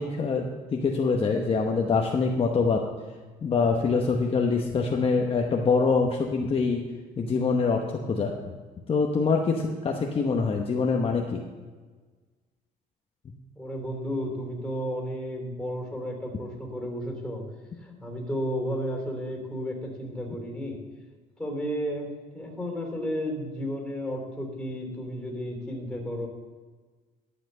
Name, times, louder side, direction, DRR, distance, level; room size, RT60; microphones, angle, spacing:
voice 1, 0.0-2.8 3.4-6.8 7.2-8.3 8.9-11.4, left 4 dB, 35° left, 1 dB, 1.0 m, -24 dB
voice 2, 13.5-17.5 17.8-20.8 21.4-26.3, equal, 5° left, 1 dB, 3.3 m, -33 dB
12.0 x 5.9 x 6.7 m, 1.4 s
cardioid pair, 110°, 17 cm